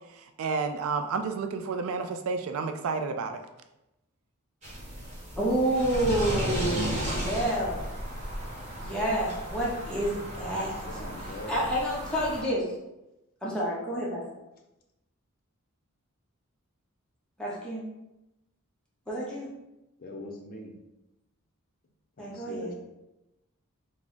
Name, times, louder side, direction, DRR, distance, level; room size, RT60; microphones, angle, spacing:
voice 1, 0.4-3.4, right 4 dB, 70° right, 8 dB, 0.3 m, -30 dB
sound 1, 4.6-12.4, equal, 30° right, 1.0 m, -34 dB
voice 2, 5.4-7.8 8.7-10.7 11.5-12.7 13.4-14.2 17.4-17.8 19.1-19.5 22.2-22.7, right 1 dB, 5° left, -6 dB, 0.6 m, -29 dB
voice 3, 10.6-11.6 20.0-20.7 22.2-22.7, left 1 dB, 45° left, 1 dB, 0.5 m, -41 dB
3.5 x 2.0 x 3.8 m, 0.93 s
head